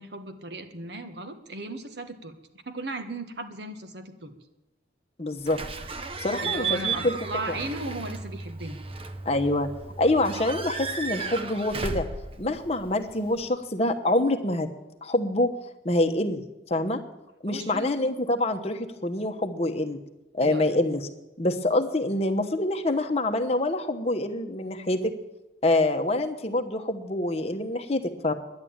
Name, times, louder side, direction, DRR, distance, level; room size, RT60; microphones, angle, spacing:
voice 1, 0.0-2.3 2.6-4.3 6.4-8.8 17.5-18.1 20.4-20.6, right 2 dB, 65° right, 8 dB, 1.4 m, -36 dB
voice 2, 5.2-5.6 6.2-7.1 7.5-7.6 9.2-9.7 10.0-12.1 12.4-14.7 15.0-15.5 15.8-17.0 17.4-20.0 20.3-21.1 21.4-25.1 25.6-28.3, left 1 dB, 35° left, 5 dB, 1.1 m, -26 dB
Slam / Squeak / Alarm, 5.5-13.4, right 5 dB, 30° right, 0.7 m, -34 dB
10.5 x 10.5 x 8.8 m, 1.0 s
head